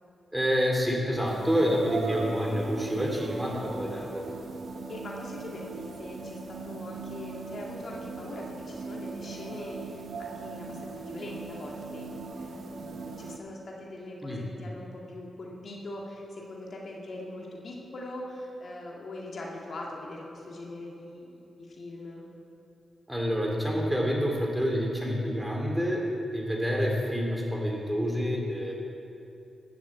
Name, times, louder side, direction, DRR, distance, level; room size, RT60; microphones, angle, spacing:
voice 1, 0.3-4.2 14.2-14.4 23.1-26.0 26.3-28.7, equal, 5° right, -1 dB, 2.8 m, -28 dB
sound 1, 1.2-13.4, right 3 dB, 70° right, 1.0 m, -39 dB
voice 2, 4.9-12.1 12.3-22.2, left 1 dB, 60° left, -2 dB, 2.0 m, -42 dB
12.5 x 7.1 x 8.0 m, 2.8 s
cardioid pair, 75°, 0 cm